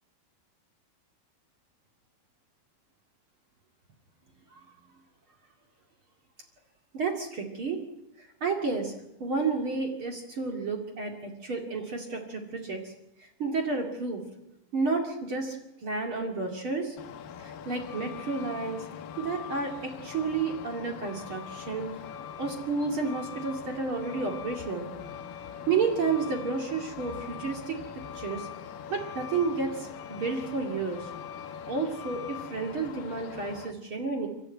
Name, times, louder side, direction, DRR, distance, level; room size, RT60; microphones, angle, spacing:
voice 1, 6.9-7.8 8.2-8.9 9.2-12.9 13.2-14.2 14.7-15.6 15.8-17.0 17.4-18.9 19.2-21.9 22.4-24.9 25.7-27.8 28.1-28.5 28.9-31.1 31.7-34.3, right 4 dB, 40° right, 3 dB, 2.0 m, -31 dB
Truck, 17.0-33.7, left 8 dB, 70° left, 2.3 m, -42 dB
30.0 x 12.5 x 9.1 m, 0.91 s
omnidirectional pair, 5.3 m